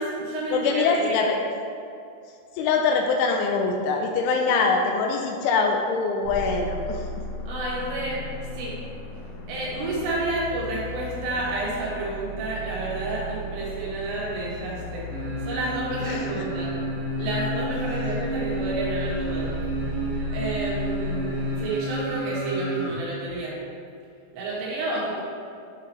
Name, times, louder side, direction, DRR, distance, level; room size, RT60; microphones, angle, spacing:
voice 1, 0.0-1.2 7.5-8.2 8.5-8.8 9.5-15.1 15.4-16.7 17.2-19.5 20.3-23.6 24.3-25.2, right 2 dB, 80° right, -5 dB, 4.3 m, -30 dB
voice 2, 0.5-1.4 2.6-7.1 16.1-16.5, left 4 dB, 85° left, 2 dB, 2.9 m, -23 dB
sound 1, 6.2-21.6, left 2 dB, 65° left, 2.9 m, -36 dB
sound 2, 15.1-23.0 23.3-23.4, right 1 dB, 65° right, 1.7 m, -30 dB
11.0 x 5.7 x 3.3 m, 2.5 s
omnidirectional pair, 5.8 m